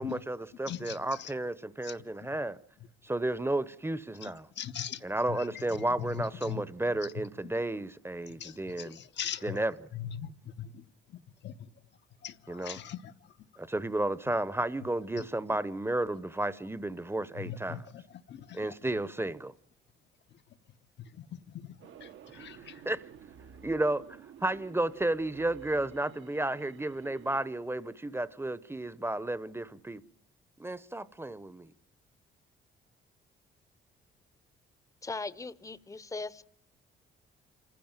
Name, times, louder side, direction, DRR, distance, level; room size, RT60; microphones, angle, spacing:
voice 1, 0.0-2.6 3.0-4.4 5.0-9.0 9.4-9.7 12.5-12.8 13.6-17.8 18.6-19.5 22.4-22.5 22.9-23.0 23.6-24.0 24.4-30.0 30.6-31.7, right 1 dB, 10° right, 0.9 m, -32 dB
voice 2, 0.7-1.4 1.8-2.0 2.8-2.9 4.2-6.6 7.0-7.1 7.4-7.5 8.3-9.7 9.9-11.7 12.2-13.5 15.2-15.3 17.3-19.3 20.3-22.8, left 9 dB, 65° left, 1.1 m, -42 dB
sound 1, 21.8-27.5, right 8 dB, 75° right, 1.3 m, -52 dB
voice 3, 35.0-36.4, left 3 dB, 15° left, 0.8 m, -39 dB
27.0 x 15.5 x 9.0 m
cardioid pair, 90°, 20 cm